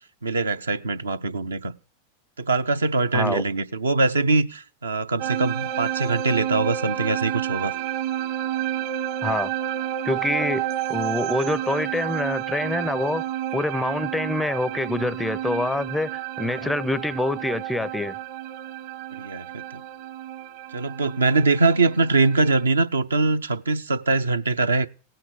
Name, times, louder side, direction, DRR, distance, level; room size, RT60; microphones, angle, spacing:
voice 1, 0.2-1.7 2.4-7.7 16.4-16.7 19.1-19.8 20.7-24.9, right 3 dB, 75° right, 0.6 m, -23 dB
voice 2, 3.1-3.4 9.2-9.5 10.0-13.2 13.5-18.2, left 2 dB, 5° left, 0.4 m, -26 dB
sound 1, 5.2-22.6, right 11 dB, 55° right, 1.1 m, -30 dB
17.0 x 5.9 x 4.7 m
figure-of-eight pair, 90°, 0 cm